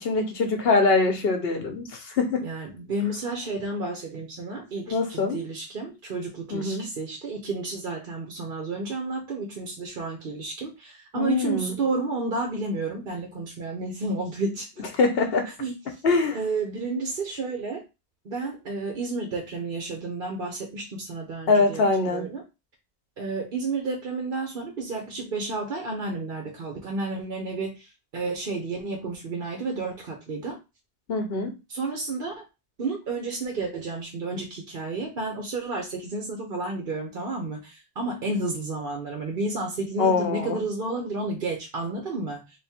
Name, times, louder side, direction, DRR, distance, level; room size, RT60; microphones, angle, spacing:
voice 1, 0.0-2.5 4.9-5.4 6.5-6.9 11.1-11.7 15.0-15.5 16.0-16.4 21.5-22.3 31.1-31.5 40.0-40.6, left 3 dB, 70° left, 1.1 m, -23 dB
voice 2, 2.4-14.7 15.6-15.7 16.3-17.8 18.2-22.4 23.2-30.6 31.7-32.4 32.8-42.4, right 3 dB, 60° right, 1.0 m, -31 dB
3.6 x 2.6 x 4.2 m
omnidirectional pair, 1.1 m